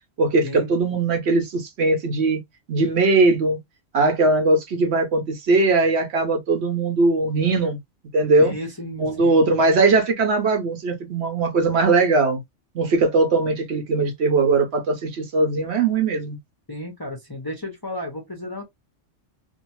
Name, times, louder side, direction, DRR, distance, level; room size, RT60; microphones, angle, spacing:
voice 1, 0.2-2.4 2.7-3.6 3.9-7.8 8.1-8.5 9.0-12.4 12.7-16.4, right 3 dB, 65° right, 1.0 m, -20 dB
voice 2, 8.4-9.4 16.7-18.6, left 1 dB, 25° left, 0.6 m, -33 dB
2.7 x 2.1 x 2.9 m
omnidirectional pair, 1.3 m